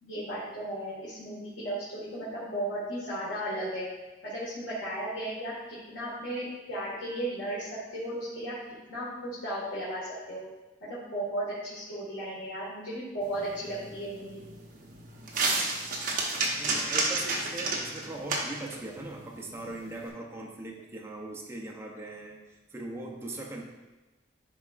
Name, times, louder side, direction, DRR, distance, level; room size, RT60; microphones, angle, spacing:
voice 1, 0.0-3.8 4.2-8.5 8.9-10.4 10.8-14.4, right 1 dB, 90° left, -9 dB, 1.8 m, -35 dB
sound 1, 13.2-20.1, right 3 dB, 45° right, 0.9 m, -32 dB
voice 2, 16.5-23.6, right 2 dB, 15° right, -2 dB, 0.7 m, -40 dB
9.9 x 4.2 x 2.5 m, 1.1 s
head